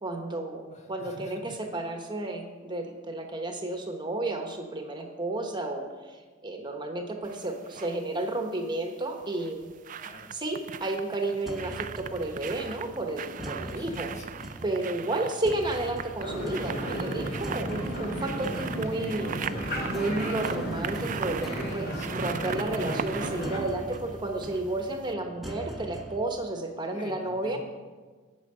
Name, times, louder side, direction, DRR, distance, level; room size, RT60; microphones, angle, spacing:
voice 1, 0.0-9.7 10.3-14.1 14.6-19.5 19.8-27.6, right 2 dB, 25° right, 4 dB, 1.1 m, -32 dB
voice 2, 0.7-1.6 9.9-10.3 13.7-14.3 15.1-15.2 21.9-22.7 26.9-27.6, left 2 dB, 35° left, 2 dB, 1.4 m, -46 dB
sound 1, 7.2-8.0 9.2-24.7 25.1-25.2, right 8 dB, 40° right, 0.3 m, -39 dB
sound 2, 11.5-26.2, equal, ahead, 1.1 m, -43 dB
sound 3, 16.2-23.6, equal, 50° left, 2.4 m, -34 dB
9.1 x 7.3 x 8.8 m, 1.4 s
head